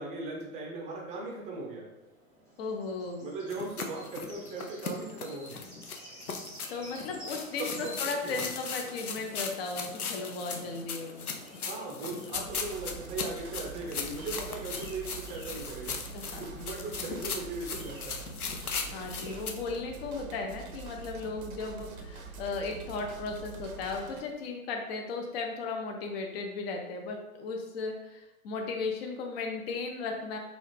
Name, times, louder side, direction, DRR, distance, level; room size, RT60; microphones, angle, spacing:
voice 1, 0.0-1.9 3.2-5.6 7.6-7.9 8.2-8.5 11.6-16.0 16.3-18.2, right 3 dB, 15° right, -2 dB, 0.5 m, -38 dB
sound 1, 1.6-19.8, right 1 dB, 5° left, 0.9 m, -52 dB
voice 2, 2.6-3.2 6.7-11.3 16.1-16.4 18.9-30.4, left 4 dB, 45° left, 2 dB, 0.7 m, -36 dB
sound 2, 3.5-19.5, left 5 dB, 85° left, 0.6 m, -38 dB
sound 3, 12.3-24.2, right 4 dB, 75° right, 0.7 m, -45 dB
4.0 x 2.4 x 3.3 m, 1.0 s
figure-of-eight pair, 105°, 43 cm